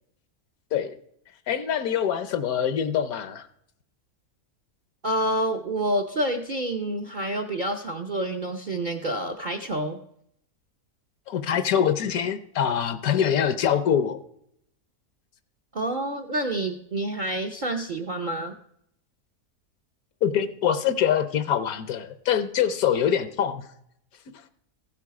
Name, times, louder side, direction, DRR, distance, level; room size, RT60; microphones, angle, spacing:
voice 1, 1.5-3.5 11.3-14.2 20.2-23.7, left 8 dB, 70° left, 12 dB, 1.2 m, -24 dB
voice 2, 5.0-10.0 15.7-18.5, right 1 dB, 50° right, 6 dB, 0.6 m, -28 dB
15.0 x 7.4 x 4.7 m, 0.72 s
omnidirectional pair, 1.7 m